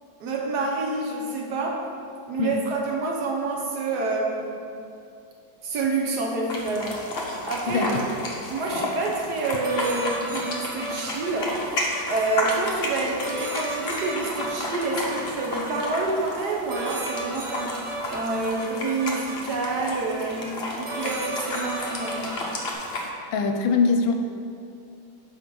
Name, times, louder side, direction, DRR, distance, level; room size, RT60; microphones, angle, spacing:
voice 1, 0.2-1.8 2.3-4.6 5.6-7.0 7.5-11.6 12.1-17.8 18.1-22.3, right 3 dB, 65° right, 0 dB, 1.2 m, -28 dB
sound 1, 6.5-23.1, left 2 dB, 50° left, 0.7 m, -32 dB
voice 2, 7.7-8.0 23.3-24.1, left 5 dB, 80° left, 5 dB, 1.3 m, -22 dB
sound 2, 9.6-12.3 13.2-15.9 16.7-19.4 20.4-20.5 20.8-22.7, right 1 dB, 85° right, 0.4 m, -35 dB
6.0 x 4.9 x 5.2 m, 2.6 s
omnidirectional pair, 2.1 m